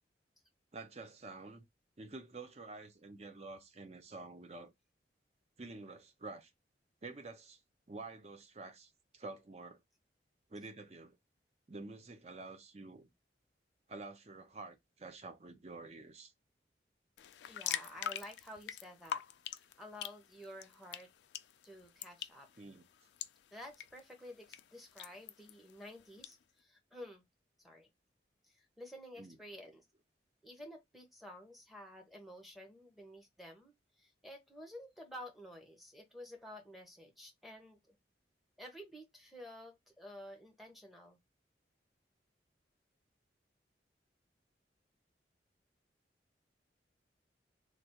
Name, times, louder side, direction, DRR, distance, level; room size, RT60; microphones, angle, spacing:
voice 1, 0.7-1.6 2.0-4.7 5.6-6.5 7.0-7.6 7.9-9.8 10.5-11.2 11.7-13.1 13.9-16.3 22.6-22.9 29.2-29.4, right 3 dB, 35° right, 0.6 m, -49 dB
sound 1, 17.2-26.3, left 9 dB, 75° left, 0.3 m, -45 dB
voice 2, 17.5-19.2 19.5-21.1 21.6-22.5 23.5-27.2 27.6-27.9 28.8-29.8 30.4-33.7 34.0-37.9 38.6-41.2, left 1 dB, ahead, 0.8 m, -51 dB
3.3 x 2.4 x 2.8 m
head